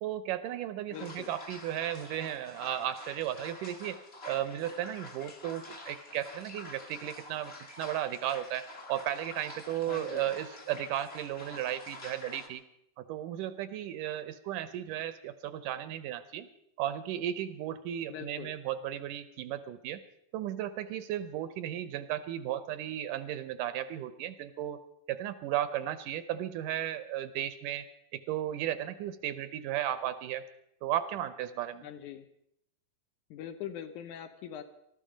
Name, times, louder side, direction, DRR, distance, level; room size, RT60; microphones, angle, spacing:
voice 1, 0.0-4.0 4.2-7.5 7.8-12.6 13.0-16.5 16.8-20.0 20.3-24.8 25.1-27.9 28.1-30.4 30.8-31.8, right 11 dB, 75° right, 13 dB, 2.0 m, -35 dB
voice 2, 0.9-1.3 9.9-10.3 18.1-18.5 31.8-32.3 33.3-34.6, left 10 dB, 75° left, 9 dB, 2.1 m, -42 dB
sound 1, 0.9-12.5, left 2 dB, 40° left, 0.9 m, -48 dB
19.5 x 13.5 x 5.1 m, 0.76 s
omnidirectional pair, 4.0 m